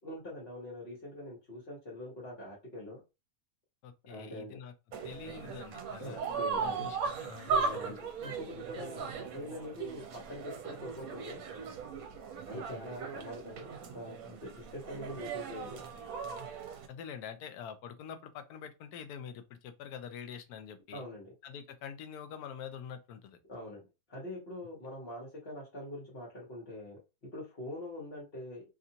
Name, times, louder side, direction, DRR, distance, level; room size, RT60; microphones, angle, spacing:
voice 1, 0.0-3.0 4.1-4.6 6.0-6.9 7.5-11.4 12.5-15.8 20.9-21.3 23.5-28.6, left 1 dB, 40° left, 1.3 m, -44 dB
voice 2, 3.8-4.7 5.0-6.2 6.6-7.5 7.9-8.0 12.5-12.8 16.9-21.0 21.4-23.4, left 7 dB, 85° left, 1.1 m, -45 dB
sound 1, 4.9-16.9, right 5 dB, 70° right, 1.1 m, -38 dB
2.9 x 2.5 x 2.8 m
omnidirectional pair, 1.6 m